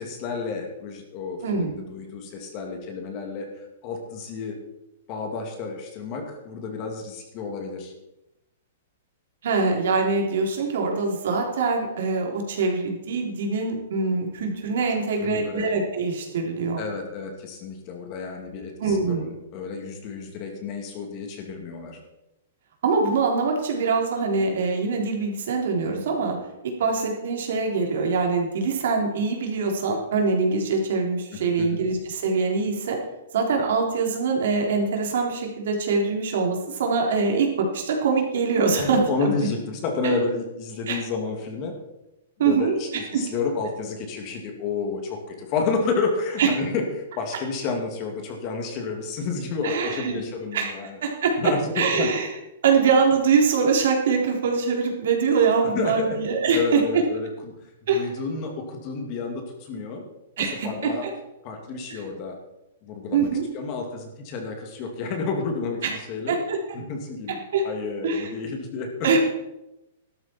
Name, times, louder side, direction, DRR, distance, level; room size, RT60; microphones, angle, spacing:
voice 1, 0.0-3.5 3.8-4.6 5.1-7.9 15.2-15.6 16.8-22.0 31.3-31.8 38.8-41.8 42.4-46.8 47.2-51.0 51.4-52.1 55.6-56.1 56.5-57.5 57.9-60.0 60.4-61.0 61.4-62.4 62.8-63.3 63.5-66.4 66.7-67.4 67.6-68.9, left 4 dB, 35° left, 3 dB, 2.3 m, -30 dB
voice 2, 1.4-1.7 9.4-16.8 18.8-19.3 22.8-26.4 26.6-33.0 33.3-39.3 40.0-40.1 40.9-41.0 42.4-43.2 46.4-46.5 49.6-50.2 50.5-50.7 51.0-52.3 52.6-57.0 57.9-58.1 60.4-61.1 61.9-62.0 63.1-63.5 65.8-65.9 66.3-66.6 67.3-67.6 68.0-68.3 69.0-69.2, right 4 dB, 65° right, 1 dB, 3.4 m, -23 dB
13.0 x 12.5 x 4.5 m, 0.93 s
hypercardioid pair, 160°, 0 cm